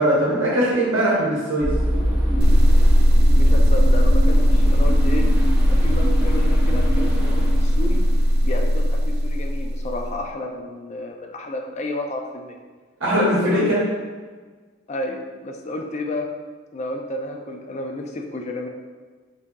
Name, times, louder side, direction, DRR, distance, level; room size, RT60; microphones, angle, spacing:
voice 1, 0.0-1.7 13.0-13.8, right 1 dB, 70° right, -6 dB, 0.9 m, -20 dB
sound 1, 1.6-9.0, equal, 10° right, 0.9 m, -23 dB
sound 2, 2.4-10.2, equal, 50° right, 0.3 m, -18 dB
voice 2, 3.3-5.3 5.7-8.0 8.4-12.6 13.1-13.7 14.9-16.3 16.7-18.7, left 2 dB, 35° left, 3 dB, 0.4 m, -31 dB
4.0 x 2.7 x 3.6 m, 1.4 s
head